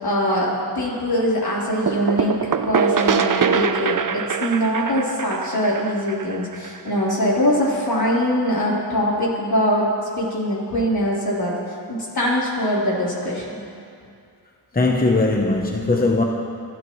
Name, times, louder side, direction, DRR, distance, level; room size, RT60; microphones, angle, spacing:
voice 1, 0.0-9.9 10.2-11.5 11.9-13.6, equal, 60° left, -6 dB, 3.9 m, -22 dB
sound 1, 1.9-7.4, right 6 dB, 50° right, 0.7 m, -23 dB
voice 2, 14.7-16.2, left 2 dB, 20° left, 1 dB, 0.9 m, -19 dB
27.0 x 12.5 x 3.2 m, 2.4 s
wide cardioid pair, 80°, 42 cm